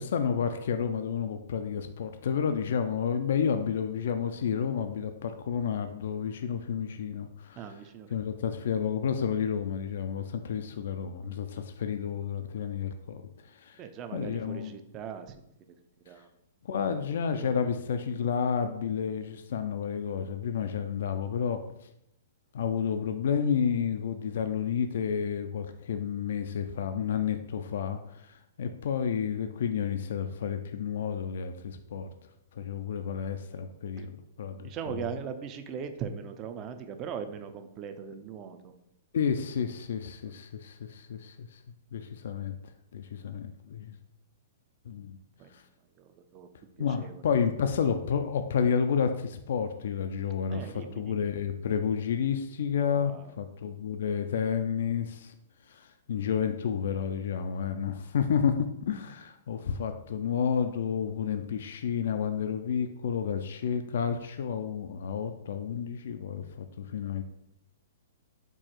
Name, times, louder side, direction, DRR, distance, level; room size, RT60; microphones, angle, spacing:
voice 1, 0.0-7.6 8.1-13.8 14.1-14.7 16.6-21.9 22.5-32.1 32.5-35.0 39.1-41.6 41.9-42.6 42.9-44.0 44.9-45.2 45.5-45.6 46.8-55.3 55.7-58.5 58.8-67.2, left 7 dB, 70° left, 8 dB, 0.3 m, -31 dB
voice 2, 7.6-8.1 13.8-15.5 16.0-16.3 17.4-17.7 34.0-34.1 34.6-38.7 45.4-45.5 46.0-46.5 46.8-47.2 50.5-51.2 53.0-53.3, right 7 dB, 30° right, 8 dB, 0.4 m, -40 dB
4.5 x 2.4 x 4.3 m, 0.81 s
hypercardioid pair, 145°, 0 cm